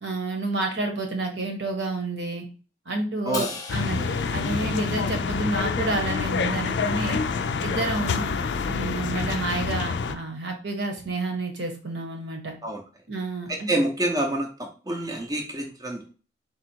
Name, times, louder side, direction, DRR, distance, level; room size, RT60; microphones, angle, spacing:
voice 1, 0.0-2.4 2.9-7.2 7.6-8.3 8.7-12.6 13.1-13.7, right 2 dB, 65° right, 3 dB, 1.2 m, -29 dB
Crash cymbal, 3.3-5.7, left 4 dB, 20° left, 0.9 m, -39 dB
sound 1, 3.7-10.2, left 5 dB, 65° left, 0.4 m, -27 dB
voice 2, 13.5-16.1, right 1 dB, 20° right, 1 dB, 0.6 m, -27 dB
4.2 x 2.4 x 4.4 m, 0.36 s
head